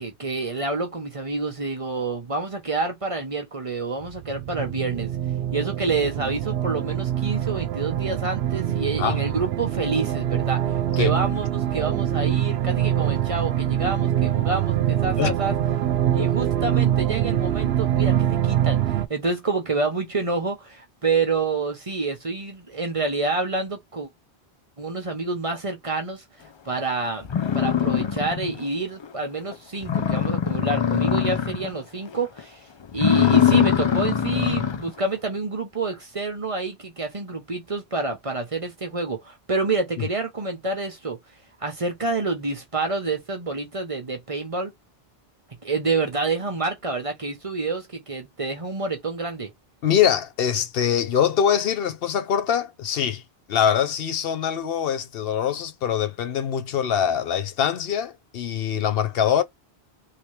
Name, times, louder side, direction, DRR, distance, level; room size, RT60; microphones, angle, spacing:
voice 1, 0.0-5.1 5.5-15.5 16.1-24.1 24.8-26.2 26.7-32.6 32.9-41.2 41.6-44.7 45.6-49.5, right 3 dB, 35° right, 0.8 m, -28 dB
sound 1, 4.0-19.1, right 11 dB, 80° right, 0.8 m, -24 dB
sound 2, 26.8-26.9 27.3-28.7 29.0-29.1 29.5-29.6 29.8-31.8 32.1-32.4 32.9-34.9, left 8 dB, 50° left, 0.3 m, -22 dB
voice 2, 49.8-53.2 53.5-59.4, left 8 dB, 70° left, 0.8 m, -23 dB
3.2 x 2.8 x 3.1 m
omnidirectional pair, 1.1 m